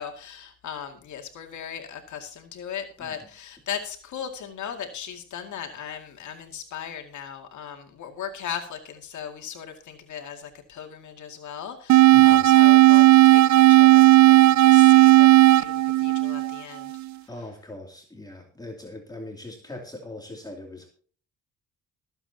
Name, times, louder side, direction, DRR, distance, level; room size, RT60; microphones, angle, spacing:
voice 1, 0.0-15.3 15.6-17.0, left 8 dB, 70° left, 4 dB, 2.2 m, -38 dB
sound 1, 11.9-16.9, right 15 dB, 70° right, 0.5 m, -14 dB
voice 2, 12.1-12.5 17.3-20.9, left 2 dB, 15° left, 1 dB, 2.7 m, -40 dB
23.5 x 8.0 x 2.8 m, 0.44 s
cardioid pair, 90°, 30 cm